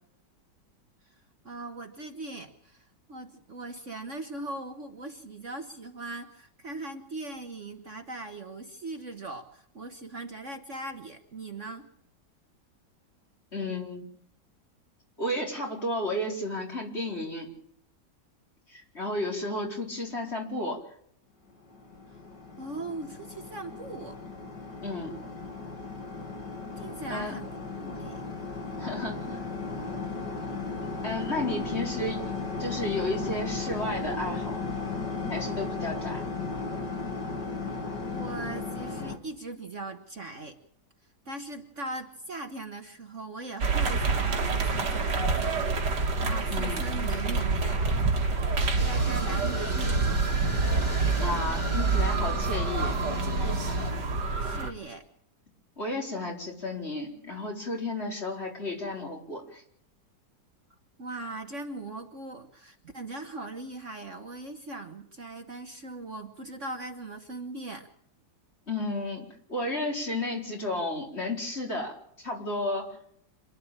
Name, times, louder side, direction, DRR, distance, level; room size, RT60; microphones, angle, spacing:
voice 1, 1.4-11.9 22.6-24.2 26.8-28.2 38.0-40.6 41.2-46.0 46.2-47.9 48.8-50.2 54.4-55.0 61.0-67.9, right 2 dB, 45° right, 5 dB, 1.6 m, -40 dB
voice 2, 13.5-14.1 15.2-17.5 18.7-20.8 24.8-25.1 27.1-27.3 28.8-29.4 31.0-32.2 32.6-34.7 35.3-36.2 46.5-46.8 51.1-53.0 55.8-59.6 68.7-73.0, left 1 dB, 35° left, -1 dB, 4.8 m, -32 dB
sound 1, 21.6-39.2, left 4 dB, 75° left, 2.9 m, -35 dB
sound 2, 43.6-54.7, right 4 dB, 75° right, 2.3 m, -27 dB
sound 3, 48.7-53.9, left 3 dB, 15° left, 1.6 m, -37 dB
27.0 x 12.0 x 8.8 m, 0.68 s
omnidirectional pair, 1.9 m